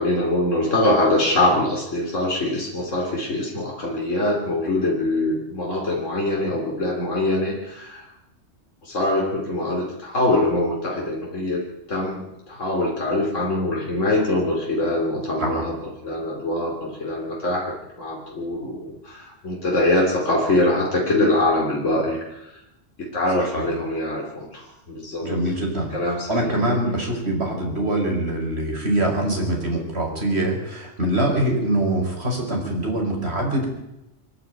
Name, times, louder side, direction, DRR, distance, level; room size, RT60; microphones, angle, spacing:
voice 1, 0.0-8.1 8.8-15.8 16.0-22.5 23.0-25.4 25.9-26.9, left 1 dB, 75° left, -2 dB, 3.6 m, -23 dB
voice 2, 25.2-25.9 26.3-33.7, right 1 dB, 55° right, 0 dB, 5.5 m, -24 dB
25.0 x 11.0 x 9.3 m, 0.90 s
omnidirectional pair, 1.3 m